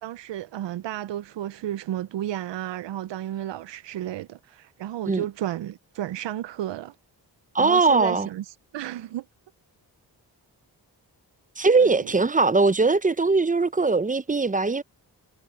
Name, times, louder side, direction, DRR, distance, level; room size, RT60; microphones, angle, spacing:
voice 1, 0.0-6.9 7.6-9.3 11.8-12.0, right 12 dB, 85° right, 0.6 m, -33 dB
voice 2, 7.5-8.3 11.6-14.8, right 3 dB, 20° right, 0.6 m, -20 dB
cardioid pair, 70°, 42 cm